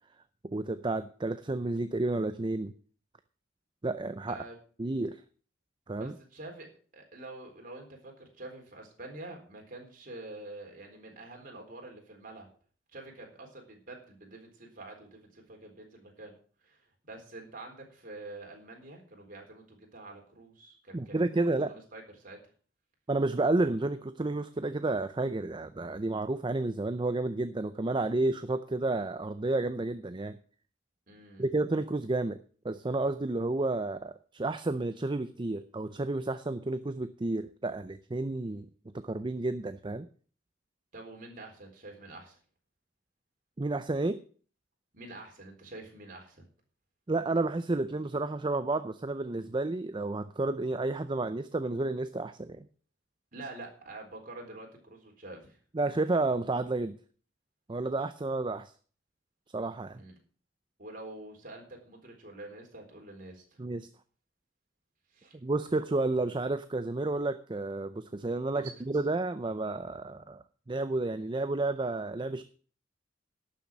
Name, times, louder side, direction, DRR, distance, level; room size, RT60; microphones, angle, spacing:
voice 1, 0.4-2.7 3.8-4.4 4.8-5.2 5.9-6.1 20.9-21.7 23.1-30.4 31.4-32.4 32.6-38.7 38.9-40.1 43.6-44.2 47.1-52.7 55.7-57.0 57.7-58.7 59.5-60.0 63.6-63.9 65.4-72.4, right 2 dB, 25° right, 11 dB, 0.5 m, -31 dB
voice 2, 6.0-12.5 12.9-16.4 16.6-16.8 17.1-22.4 31.1-31.5 40.9-42.4 44.9-46.4 53.3-55.6 60.0-60.1 60.8-63.6 65.1-65.4 68.5-68.7, right 2 dB, 45° right, 1 dB, 4.0 m, -47 dB
11.5 x 7.2 x 7.2 m, 0.42 s
head